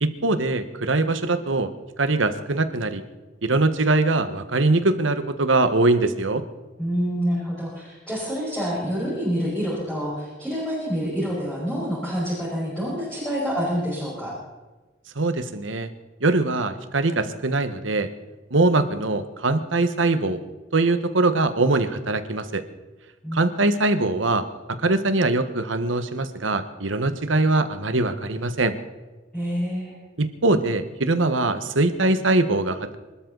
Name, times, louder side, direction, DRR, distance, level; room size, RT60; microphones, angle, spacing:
voice 1, 0.0-1.7 2.0-3.0 3.4-6.4 15.2-15.9 16.2-18.1 18.5-20.4 20.7-22.6 23.3-24.4 24.8-28.7 30.2-33.0, right 2 dB, 85° right, 10 dB, 1.4 m, -22 dB
voice 2, 6.8-14.3 23.2-23.4 29.3-30.0, equal, 5° left, -7 dB, 5.7 m, -27 dB
25.5 x 13.0 x 4.1 m, 1.2 s
head